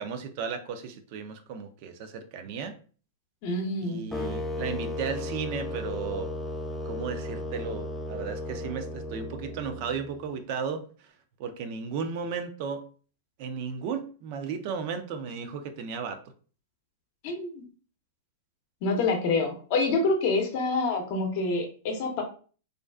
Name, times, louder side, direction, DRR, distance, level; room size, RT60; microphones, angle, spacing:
voice 1, 0.0-2.7 3.8-6.3 6.8-11.1 11.4-12.9 13.4-16.2, right 6 dB, 55° right, 7 dB, 0.4 m, -35 dB
voice 2, 3.4-4.0 17.2-17.6 18.8-22.2, left 3 dB, 55° left, 3 dB, 0.6 m, -27 dB
sound 1, 4.1-10.2, left 2 dB, 5° left, 0.4 m, -35 dB
2.4 x 2.3 x 2.2 m, 0.40 s
hypercardioid pair, 120°, 0 cm